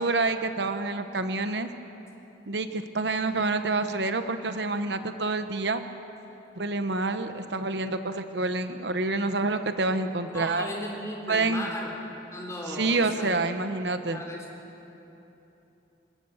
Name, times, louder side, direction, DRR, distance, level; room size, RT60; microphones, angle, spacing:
voice 1, 0.0-1.7 2.5-5.8 6.6-10.7 11.3-11.6 12.7-14.2, right 3 dB, 70° right, 8 dB, 1.1 m, -27 dB
voice 2, 10.3-12.0 12.3-13.4 14.1-14.5, left 1 dB, 15° left, -1 dB, 3.7 m, -36 dB
26.0 x 21.5 x 7.2 m, 3.0 s
head